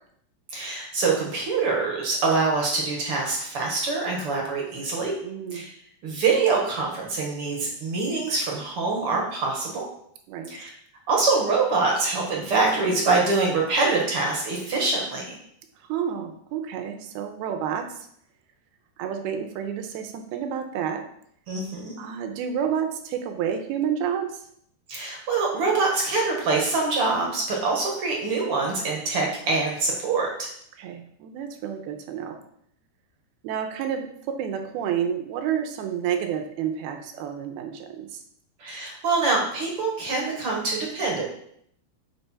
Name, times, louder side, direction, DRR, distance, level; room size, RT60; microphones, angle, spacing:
voice 1, 0.5-5.2 5.5-5.6 6.0-9.8 10.5-10.7 11.1-15.4 21.5-21.9 24.9-30.5 38.6-41.2, right 3 dB, 55° right, -1 dB, 1.7 m, -24 dB
voice 2, 5.2-5.7 10.3-10.5 15.8-18.1 19.0-21.0 22.0-24.4 30.8-32.4 33.4-38.2, right 8 dB, 80° right, 5 dB, 2.7 m, -30 dB
8.9 x 5.4 x 4.4 m, 0.68 s
omnidirectional pair, 4.7 m